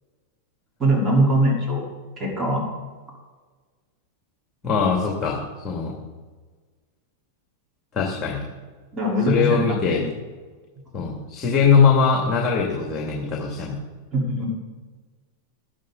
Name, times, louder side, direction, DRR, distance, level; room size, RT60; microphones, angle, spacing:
voice 1, 0.8-1.8 2.2-2.6 8.9-10.0 14.1-14.5, right 1 dB, 25° right, -3 dB, 4.2 m, -21 dB
voice 2, 4.6-5.9 7.9-8.4 9.3-10.0 10.9-13.8, left 5 dB, 25° left, -1 dB, 2.6 m, -21 dB
13.0 x 12.0 x 4.1 m, 1.4 s
hypercardioid pair, 110°, 0 cm